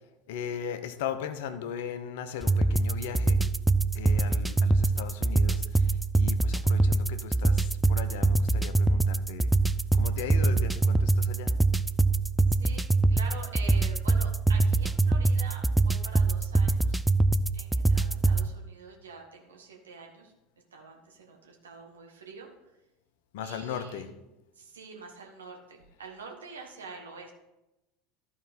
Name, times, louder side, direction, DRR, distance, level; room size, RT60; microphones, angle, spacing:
voice 1, 0.3-3.4 3.9-5.9 6.2-9.5 10.0-11.5 23.3-24.1, left 8 dB, 60° left, 11 dB, 0.7 m, -38 dB
sound 1, 2.4-18.5, right 3 dB, 5° right, 0.4 m, -24 dB
voice 2, 12.6-17.0 17.5-20.3 20.7-22.7 23.4-24.2 24.5-27.3, right 4 dB, 75° right, 1 dB, 1.6 m, -46 dB
14.0 x 4.6 x 4.3 m, 0.98 s
figure-of-eight pair, 75°, 0 cm